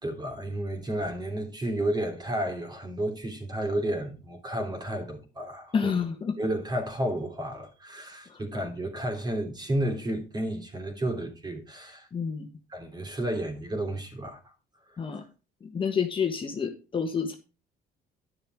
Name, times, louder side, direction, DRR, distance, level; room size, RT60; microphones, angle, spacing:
voice 1, 0.0-5.9 6.4-12.1 12.7-14.4, right 1 dB, 25° right, 3.1 m, -32 dB
voice 2, 5.7-6.3 8.3-8.4 12.1-12.5 15.0-15.2 15.6-17.4, left 6 dB, 30° left, 1.4 m, -29 dB
11.0 x 6.7 x 4.7 m
cardioid pair, 110°, 17 cm